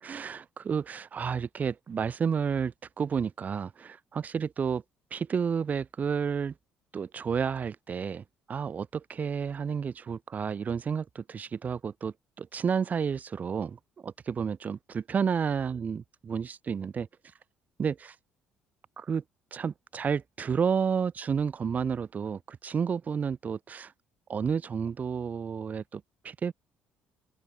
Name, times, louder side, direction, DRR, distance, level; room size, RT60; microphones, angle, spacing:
voice 1, 0.0-4.8 5.1-6.5 6.9-17.1 17.8-18.1 19.0-19.2 19.5-23.9 24.3-26.5, right 6 dB, 40° right, 1.2 m, -31 dB
open air
cardioid pair, 90°, 4 cm